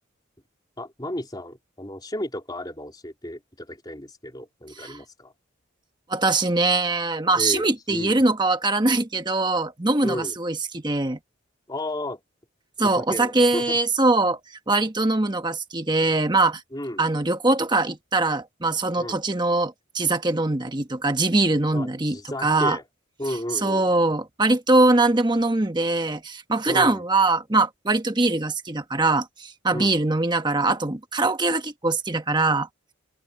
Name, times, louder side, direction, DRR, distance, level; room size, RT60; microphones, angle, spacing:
voice 1, 0.8-5.3 7.3-8.2 10.0-10.3 11.7-12.2 12.8-13.8 16.7-17.0 19.0-19.2 21.7-22.8 23.2-23.9 26.7-27.0 29.7-30.0, left 1 dB, 20° left, 3.7 m, -33 dB
voice 2, 6.1-11.2 12.8-14.4 14.7-16.6 17.0-22.8 23.6-32.7, right 2 dB, 20° right, 1.2 m, -22 dB
open air
head